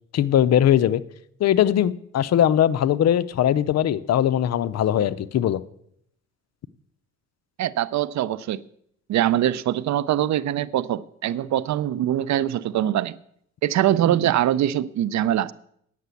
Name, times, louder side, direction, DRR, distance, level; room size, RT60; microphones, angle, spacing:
voice 1, 0.1-1.0 1.4-5.6, left 10 dB, 60° left, 0.6 m, -20 dB
voice 2, 7.6-8.6 9.1-13.2 13.6-15.5, right 12 dB, 65° right, 0.6 m, -23 dB
9.3 x 6.7 x 8.3 m
cardioid pair, 90°, 30 cm